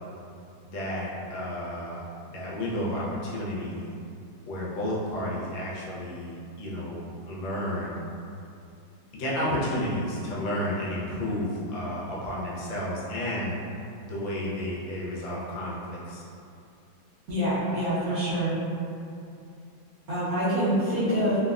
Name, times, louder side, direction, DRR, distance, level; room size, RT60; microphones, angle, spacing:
voice 1, 0.6-2.0 2.3-3.9 4.5-8.1 9.1-13.6 14.1-16.2, left 1 dB, 75° left, -6 dB, 1.3 m, -31 dB
voice 2, 17.3-18.5 20.1-21.4, equal, 60° right, -12 dB, 1.0 m, -26 dB
3.3 x 2.1 x 2.3 m, 2.6 s
omnidirectional pair, 2.2 m